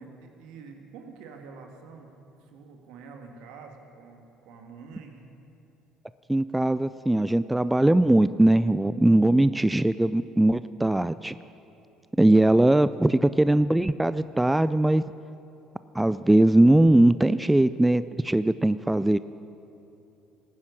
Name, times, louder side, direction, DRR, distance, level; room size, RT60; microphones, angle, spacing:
voice 1, 0.0-2.1 2.4-5.2 13.1-13.4, right 5 dB, 70° right, 3 dB, 1.7 m, -46 dB
voice 2, 6.3-11.4 12.2-15.0 15.9-19.2, right 1 dB, 10° right, 15 dB, 0.3 m, -20 dB
18.0 x 9.8 x 6.2 m, 2.9 s
hypercardioid pair, 60°, 0 cm